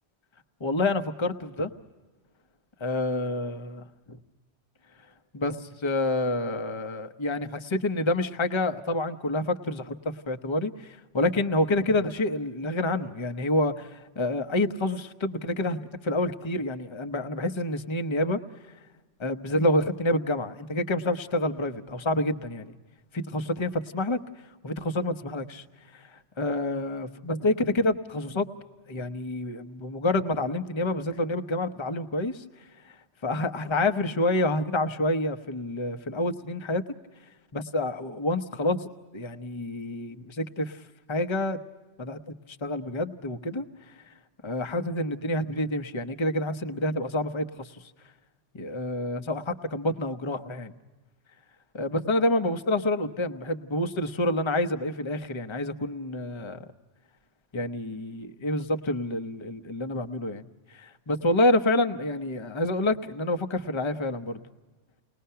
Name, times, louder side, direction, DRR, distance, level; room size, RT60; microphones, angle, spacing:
voice 1, 0.6-1.7 2.8-4.2 5.3-18.4 19.2-22.7 23.1-24.2 24.6-25.6 25.9-28.5 28.9-32.4 32.8-33.0 33.2-36.8 37.5-40.8 41.1-41.6 42.0-44.0 44.4-47.8 48.5-50.8 51.7-56.7 57.5-64.4, left 1 dB, 30° left, 7 dB, 0.8 m, -28 dB
29.5 x 20.5 x 5.6 m, 1.2 s
omnidirectional pair, 1.2 m